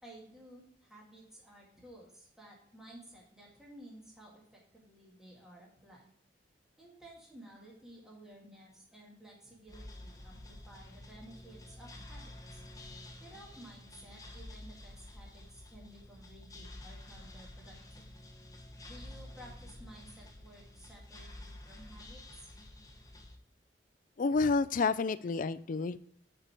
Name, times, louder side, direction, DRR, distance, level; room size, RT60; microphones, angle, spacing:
voice 1, 0.0-6.1 6.8-12.6 13.2-18.0 18.9-22.5, right 1 dB, 5° right, -4 dB, 1.9 m, -54 dB
sound 1, 9.7-23.4, left 1 dB, 20° left, 1.1 m, -50 dB
voice 2, 24.2-26.0, left 4 dB, 50° left, 15 dB, 0.4 m, -29 dB
9.3 x 4.5 x 4.7 m, 0.70 s
head